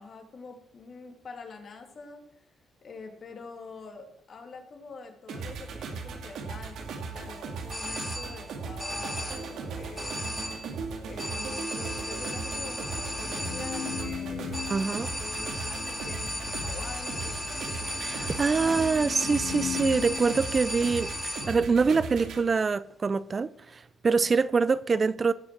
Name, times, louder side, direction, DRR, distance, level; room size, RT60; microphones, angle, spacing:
voice 1, 0.0-2.2 2.8-10.3 11.0-14.7 15.1-19.2, left 4 dB, 50° left, 2.8 m, -45 dB
sound 1, 5.3-22.4, right 4 dB, 75° right, 2.2 m, -38 dB
sound 2, 7.7-8.5 8.8-9.6 10.0-10.8 11.2-21.7, left 1 dB, 10° left, 3.6 m, -36 dB
sound 3, 12.3-21.4, left 9 dB, 85° left, 0.7 m, -39 dB
voice 2, 14.7-15.1 18.0-25.3, right 4 dB, 35° right, 0.5 m, -25 dB
18.0 x 6.2 x 6.2 m
cardioid pair, 90°, 0 cm